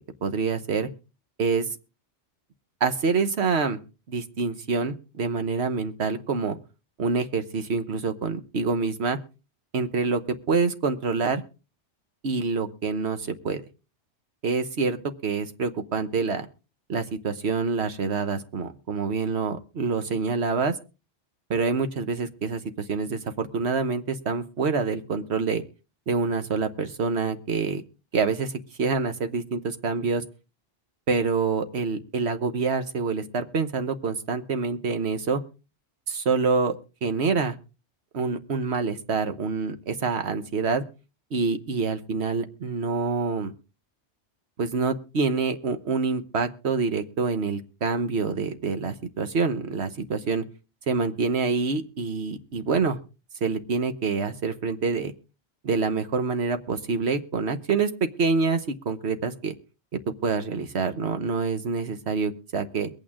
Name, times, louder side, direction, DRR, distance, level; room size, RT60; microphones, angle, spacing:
voice 1, 0.2-0.9 1.4-1.7 2.8-3.8 4.1-6.6 7.0-9.2 9.7-10.2 10.5-11.4 12.2-13.6 14.4-15.0 15.2-16.5 16.9-20.7 21.5-25.6 26.1-27.8 28.1-30.2 31.1-35.4 36.1-36.8 37.0-37.5 38.1-40.8 41.3-43.5 44.6-50.4 50.9-53.0 53.4-55.1 55.6-59.5 59.9-62.9, right 4 dB, 65° right, 8 dB, 1.4 m, -26 dB
22.5 x 8.8 x 3.6 m, 0.32 s
omnidirectional pair, 1.2 m